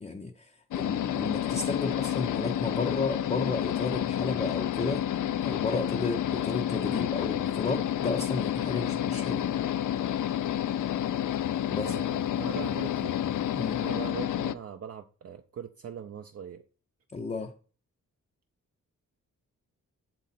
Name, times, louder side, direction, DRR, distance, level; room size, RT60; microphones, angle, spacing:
voice 1, 0.0-5.1 5.4-9.5 11.7-12.0 13.6-13.8 17.1-17.5, left 3 dB, 20° left, 0.5 m, -33 dB
sound 1, 0.7-14.5, left 11 dB, 70° left, 0.5 m, -30 dB
sound 2, 3.3-14.1, left 7 dB, 90° left, 1.2 m, -51 dB
voice 2, 11.8-13.2 13.8-16.6, right 8 dB, 50° right, 0.5 m, -41 dB
7.4 x 4.0 x 4.1 m
wide cardioid pair, 145°, 32 cm